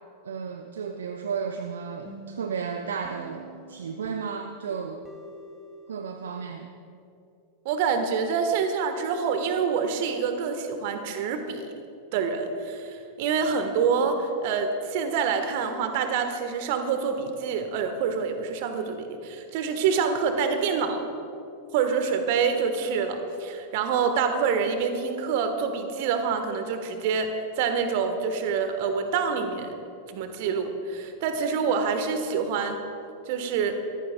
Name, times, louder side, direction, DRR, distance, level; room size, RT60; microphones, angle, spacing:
voice 1, 0.2-5.1 5.9-6.7, right 6 dB, 65° right, 6 dB, 0.6 m, -33 dB
sound 1, 2.1-6.7, right 1 dB, 10° left, 1.6 m, -47 dB
voice 2, 7.6-11.7 12.1-21.0 21.7-29.7 30.1-32.8 33.3-33.8, right 6 dB, 50° right, 7 dB, 1.4 m, -26 dB
24.5 x 14.5 x 2.3 m, 2.6 s
figure-of-eight pair, 90°, 0 cm